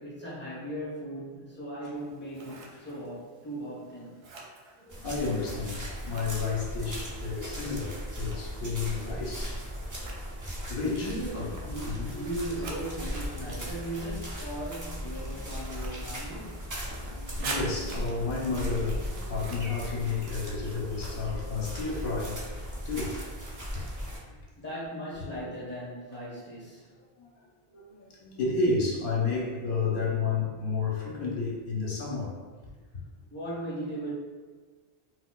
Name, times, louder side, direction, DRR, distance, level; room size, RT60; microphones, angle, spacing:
voice 1, 0.0-4.3 11.0-16.7 24.6-26.9 33.3-34.1, right 1 dB, 10° left, -7 dB, 0.9 m, -38 dB
Scissors, 1.9-20.7, right 3 dB, 80° right, 0.8 m, -47 dB
voice 2, 4.8-10.1 10.7-11.5 11.8-12.2 13.4-13.6 17.0-23.2 23.7-23.8 26.9-32.4 32.9-33.0, left 4 dB, 60° left, -3 dB, 0.8 m, -32 dB
sound 1, 4.9-24.2, equal, 30° right, 0.4 m, -37 dB
4.0 x 2.1 x 2.3 m, 1.4 s
omnidirectional pair, 1.1 m